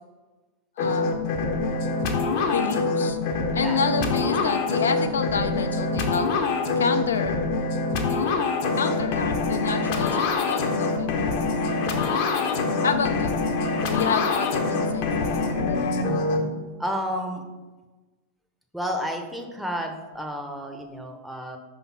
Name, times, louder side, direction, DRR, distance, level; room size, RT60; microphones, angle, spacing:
voice 1, 0.8-1.4 2.5-3.2 3.5-6.3 6.8-7.5 8.1-8.4 8.8-11.3 12.8-13.5 13.9-15.9, left 5 dB, 65° left, 8 dB, 0.6 m, -29 dB
sound 1, 0.8-16.4, left 3 dB, 50° left, 0.9 m, -25 dB
voice 2, 16.8-17.4 18.7-21.6, equal, ahead, 3 dB, 0.8 m, -31 dB
5.4 x 4.0 x 5.7 m, 1.2 s
figure-of-eight pair, 90°, 0 cm